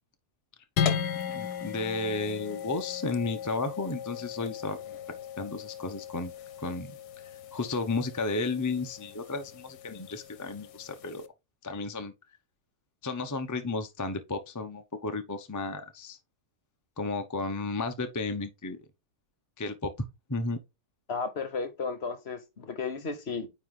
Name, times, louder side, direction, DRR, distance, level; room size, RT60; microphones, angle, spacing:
sound 1, 0.8-11.3, left 8 dB, 70° left, 1.2 m, -36 dB
voice 1, 1.3-5.0 5.4-6.3 6.6-6.9 7.5-11.3 11.6-12.1 13.0-16.2 17.0-18.8 19.6-19.9 20.3-20.6, left 3 dB, 25° left, 0.4 m, -33 dB
voice 2, 21.1-23.5, left 4 dB, 45° left, 1.0 m, -34 dB
9.5 x 3.5 x 3.7 m
omnidirectional pair, 1.8 m